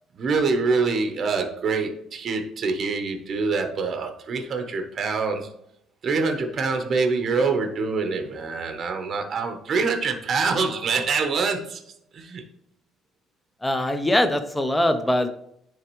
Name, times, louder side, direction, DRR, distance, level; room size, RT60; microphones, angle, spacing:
voice 1, 0.1-5.6 6.0-11.8 12.1-12.4, right 4 dB, 40° right, 5 dB, 0.8 m, -25 dB
voice 2, 13.6-15.3, left 1 dB, 10° left, 8 dB, 0.5 m, -22 dB
9.9 x 3.4 x 3.0 m, 0.73 s
cardioid pair, 155°, 0 cm